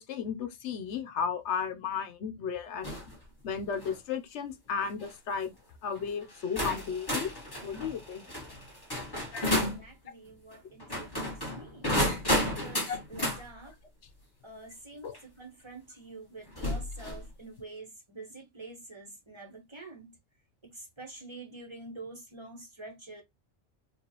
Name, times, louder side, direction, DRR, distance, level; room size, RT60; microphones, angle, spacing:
voice 1, 0.0-2.9 3.4-5.5 5.8-7.3 7.6-8.3 9.3-9.5 12.9-13.0 15.0-15.2, left 6 dB, 80° left, 1.0 m, -34 dB
sound 1, 2.8-3.1 3.6-4.0 4.8-5.1 5.9-6.0 6.6-9.8 10.8-13.4 15.1-15.2 16.5-17.2, left 1 dB, 20° left, 1.4 m, -32 dB
voice 2, 9.1-12.0 12.4-13.8 14.4-20.2 20.6-23.2, right 3 dB, 25° right, 1.0 m, -47 dB
4.6 x 2.5 x 2.9 m
omnidirectional pair, 1.2 m